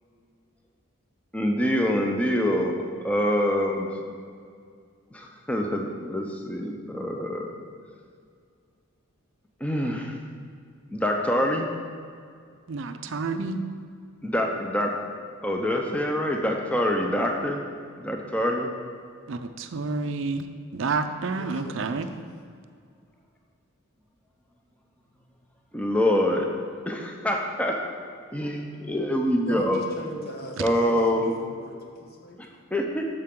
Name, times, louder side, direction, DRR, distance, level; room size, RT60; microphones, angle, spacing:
voice 1, 1.3-4.0 5.1-7.5 9.6-10.2 10.9-11.7 14.2-15.0 15.4-17.6 18.0-18.7 25.7-26.5 26.9-27.8 28.3-29.8 30.6-31.3 32.4-33.1, equal, 5° left, 1 dB, 0.6 m, -25 dB
voice 2, 12.7-13.6 19.3-20.5 20.7-22.1, right 4 dB, 60° right, 8 dB, 0.5 m, -29 dB
voice 3, 21.3-22.2 29.5-32.4, equal, 45° left, 1 dB, 1.1 m, -39 dB
8.7 x 6.7 x 3.7 m, 2.2 s
head